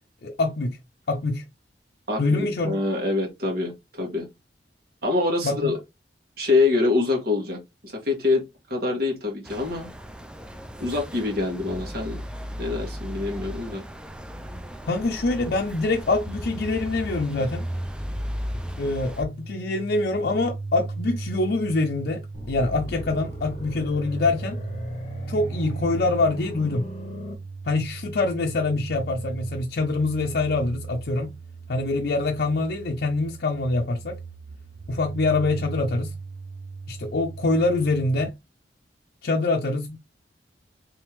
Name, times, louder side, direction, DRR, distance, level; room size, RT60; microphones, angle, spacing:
voice 1, 0.2-0.8 1.1-1.5 2.2-2.8 5.4-5.7 14.9-17.7 18.8-24.6 25.3-26.9 27.6-31.3 31.7-34.2 34.9-36.1 36.9-38.3 39.2-40.0, left 3 dB, 60° left, 0.5 m, -25 dB
voice 2, 2.1-4.3 5.0-5.8 6.4-9.9 10.8-12.2 12.6-13.8, left 3 dB, 60° right, 1.9 m, -25 dB
sound 1, 9.5-19.2, equal, 5° right, 0.4 m, -35 dB
sound 2, 19.1-38.3, right 4 dB, 80° right, 0.5 m, -37 dB
sound 3, 22.3-27.3, left 1 dB, 40° left, 0.9 m, -38 dB
3.4 x 3.4 x 3.1 m
head